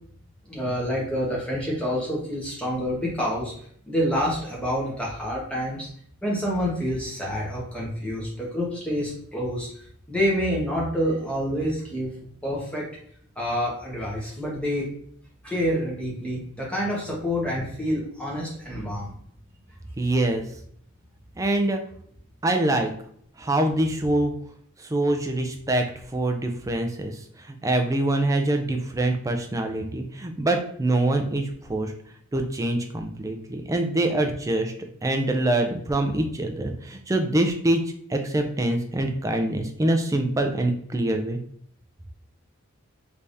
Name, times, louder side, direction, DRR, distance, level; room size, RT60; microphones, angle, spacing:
voice 1, 0.5-3.5 3.9-5.9 6.2-12.1 12.4-12.9 13.4-14.9 15.4-19.2, equal, 5° left, -5 dB, 1.1 m, -27 dB
voice 2, 20.0-20.4 21.4-21.8 22.4-22.9 23.4-24.3 24.8-31.9 32.3-34.7 35.0-41.4, right 1 dB, 15° right, 4 dB, 0.3 m, -25 dB
3.4 x 3.4 x 2.6 m, 0.63 s
head